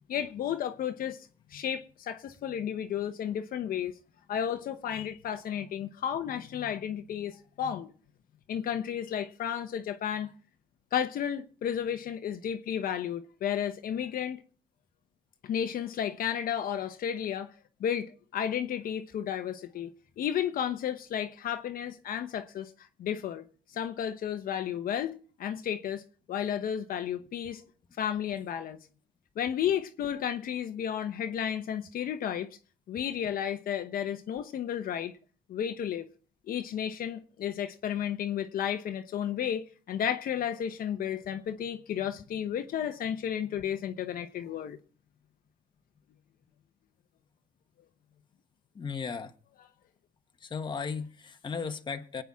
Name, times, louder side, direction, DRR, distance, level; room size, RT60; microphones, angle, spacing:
voice 1, 0.1-1.2 1.5-3.9 4.3-7.9 8.5-10.3 10.9-14.4 15.4-17.5 17.8-19.9 20.2-26.0 26.3-27.6 28.0-28.8 29.4-32.5 32.9-35.1 35.5-36.1 36.5-44.8, left 9 dB, 60° left, 1.0 m, -33 dB
voice 2, 48.7-49.3 50.4-52.2, left 5 dB, 25° left, 1.2 m, -36 dB
22.0 x 9.1 x 3.6 m
cardioid pair, 110°, 17 cm